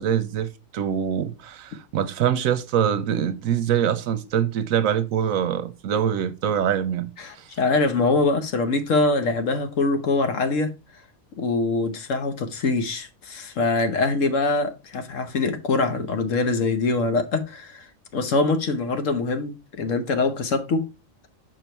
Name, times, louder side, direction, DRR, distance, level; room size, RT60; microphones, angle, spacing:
voice 1, 0.0-7.1, right 9 dB, 85° right, 1.1 m, -24 dB
voice 2, 7.2-10.7 11.4-17.9 18.1-20.9, left 3 dB, 70° left, 1.4 m, -23 dB
6.7 x 4.6 x 4.4 m
omnidirectional pair, 1.4 m